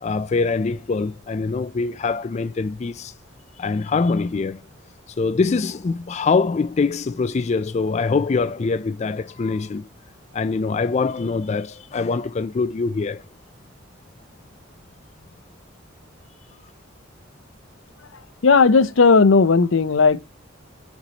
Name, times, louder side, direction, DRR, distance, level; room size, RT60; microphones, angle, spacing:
voice 1, 0.0-3.1 3.6-4.6 5.2-9.9 10.3-13.2, left 4 dB, 35° left, 0.3 m, -23 dB
voice 2, 18.4-20.2, left 4 dB, 75° left, 0.6 m, -15 dB
6.0 x 5.6 x 2.8 m
head